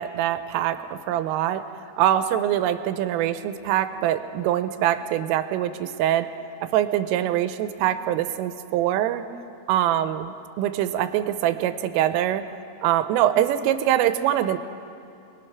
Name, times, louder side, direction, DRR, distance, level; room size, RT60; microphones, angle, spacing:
voice 1, 0.0-1.6 2.0-6.4 6.6-9.3 9.7-12.5 12.8-14.6, right 11 dB, 85° right, 10 dB, 3.3 m, -24 dB
28.5 x 21.0 x 5.9 m, 2.7 s
omnidirectional pair, 5.8 m